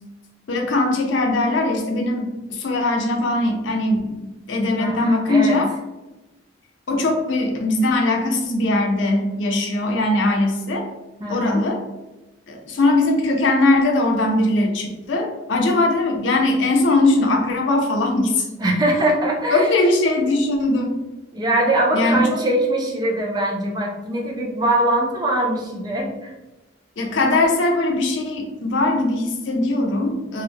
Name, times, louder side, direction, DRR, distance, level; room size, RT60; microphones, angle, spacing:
voice 1, 0.5-5.7 6.9-10.9 11.3-11.8 12.5-18.5 19.5-21.0 21.9-22.3 27.0-30.4, left 2 dB, 85° left, 2 dB, 0.5 m, -20 dB
voice 2, 4.8-5.6 11.2-11.6 18.6-19.7 21.3-26.3, right 1 dB, 20° right, -1 dB, 0.4 m, -22 dB
2.3 x 2.0 x 3.4 m, 1.1 s
head